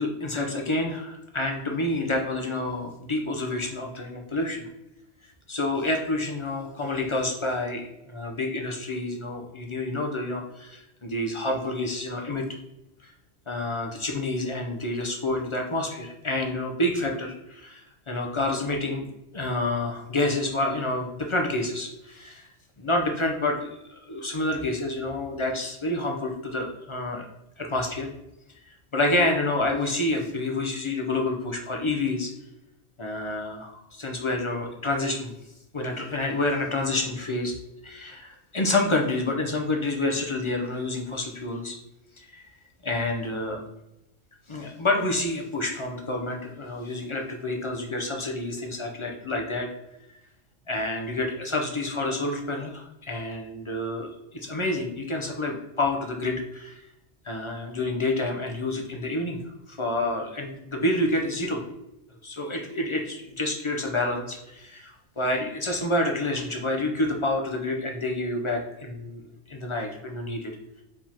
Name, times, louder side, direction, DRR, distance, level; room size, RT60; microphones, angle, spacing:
voice 1, 0.0-4.6 5.5-12.5 13.0-13.1 13.5-19.1 19.3-22.5 22.8-27.3 27.6-28.1 28.7-32.3 33.0-35.3 35.7-37.5 37.8-41.8 42.2-42.4 42.8-43.6 44.5-49.7 50.7-56.8 57.2-59.4 59.7-61.6 62.2-69.2 69.5-70.5, left 2 dB, 35° left, 2 dB, 0.5 m, -28 dB
4.7 x 3.6 x 2.8 m, 0.89 s
omnidirectional pair, 1.2 m